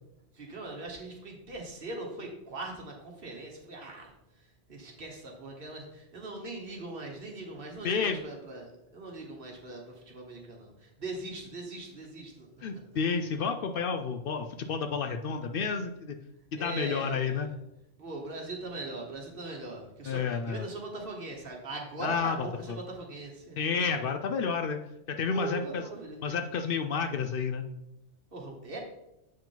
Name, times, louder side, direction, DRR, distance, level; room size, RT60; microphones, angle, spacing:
voice 1, 0.3-13.0 16.5-17.6 18.0-24.0 25.3-26.2 28.3-28.8, right 2 dB, 50° right, 0 dB, 1.5 m, -41 dB
voice 2, 7.8-8.2 12.6-16.2 16.5-17.5 20.1-20.6 22.0-22.4 23.6-24.8 25.1-25.8 26.2-27.6, left 5 dB, 60° left, 7 dB, 0.6 m, -30 dB
7.4 x 4.7 x 3.8 m, 0.88 s
omnidirectional pair, 1.3 m